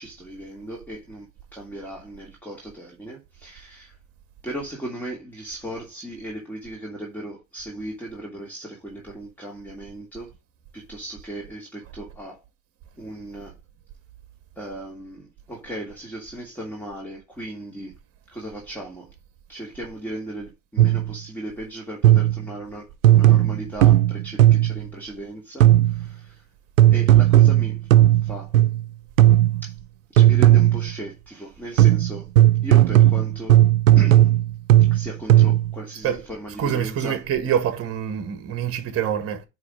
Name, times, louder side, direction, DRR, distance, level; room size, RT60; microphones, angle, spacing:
voice 1, 0.0-4.0 4.4-10.3 10.7-12.4 13.0-13.5 14.6-17.9 18.3-19.1 19.5-26.4 26.9-27.9 28.2-28.5 29.6-29.8 30.1-32.3 32.6-33.6 34.0-34.3 34.9-37.2, right 1 dB, 5° left, 2.7 m, -36 dB
sound 1, 20.8-21.2 22.0-22.5 23.0-24.8 25.6-26.1 26.8-28.9 29.2-29.7 30.2-30.9 31.8-35.8, right 13 dB, 80° right, 0.7 m, -15 dB
voice 2, 36.6-39.4, right 9 dB, 35° right, 1.7 m, -25 dB
9.6 x 3.5 x 5.1 m
hypercardioid pair, 90°, 39 cm